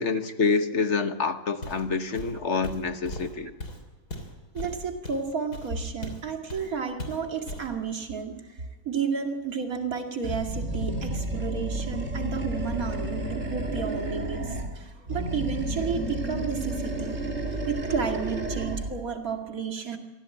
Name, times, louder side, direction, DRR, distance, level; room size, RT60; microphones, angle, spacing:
voice 1, 0.0-3.5, left 4 dB, 50° left, 9 dB, 1.4 m, -27 dB
Walk footsteps, 1.6-1.9 2.1-6.2 6.5-6.7 7.0-7.7, left 1 dB, 75° left, 3.7 m, -38 dB
voice 2, 4.5-17.2 17.7-20.0, right 6 dB, 60° right, 3 dB, 2.7 m, -32 dB
Animal, 10.2-14.8 15.1-19.0, right 2 dB, 45° right, 2.7 m, -31 dB
25.0 x 16.5 x 8.4 m, 1.3 s
omnidirectional pair, 1.7 m